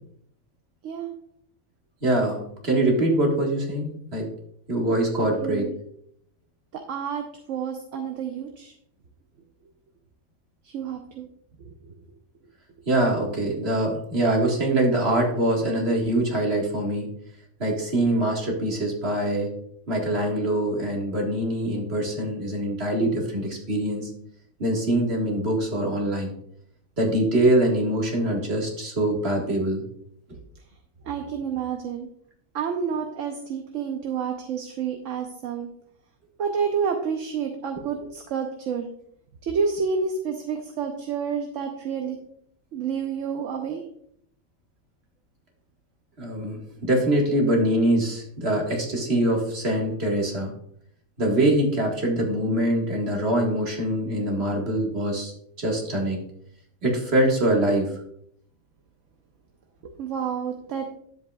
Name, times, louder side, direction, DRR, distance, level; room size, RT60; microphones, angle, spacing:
voice 1, 0.8-1.1 5.2-5.7 6.7-8.7 10.6-11.3 31.0-32.1 32.5-35.7 36.4-38.9 39.4-42.2 42.7-43.8 59.8-60.9, right 6 dB, 70° right, 4 dB, 1.1 m, -29 dB
voice 2, 2.0-4.3 4.7-5.6 12.9-17.1 17.6-19.5 19.9-24.1 24.6-26.3 27.0-29.8 46.2-50.5 51.2-55.3 55.6-56.2 56.8-57.9, right 1 dB, 45° right, 0 dB, 2.0 m, -24 dB
10.5 x 7.6 x 2.3 m, 0.68 s
omnidirectional pair, 1.4 m